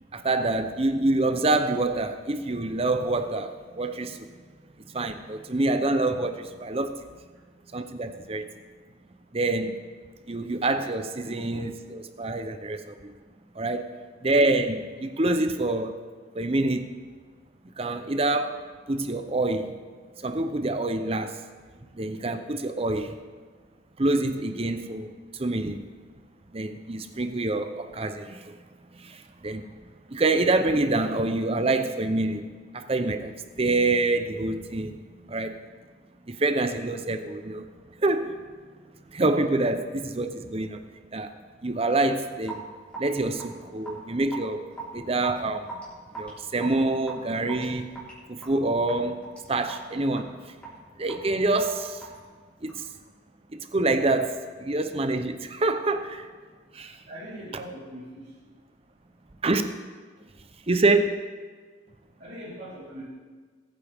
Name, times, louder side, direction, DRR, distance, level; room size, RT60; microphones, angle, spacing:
voice 1, 0.1-4.3 4.9-7.0 7.7-8.5 9.3-9.8 10.3-13.1 13.5-13.9 14.2-16.0 16.3-16.9 17.8-18.6 18.9-19.8 20.2-21.4 21.9-23.2 24.0-25.9 26.5-28.6 29.0-29.7 30.1-32.5 32.7-35.6 36.3-37.7 38.0-38.4 39.1-40.8 41.1-41.3 41.6-42.6 43.0-44.6 44.9-45.8 46.2-47.9 48.3-49.2 49.5-50.4 51.0-52.0 52.6-52.9 53.5-56.3 56.7-57.0 59.4-59.6 60.7-61.1, right 2 dB, 30° right, 8 dB, 0.7 m, -26 dB
Raindrop / Drip, 42.4-52.9, right 4 dB, 5° left, 4.0 m, -42 dB
voice 2, 57.1-58.4 62.2-63.1, right 1 dB, 55° right, -11 dB, 3.8 m, -41 dB
20.0 x 9.1 x 3.6 m, 1.5 s
head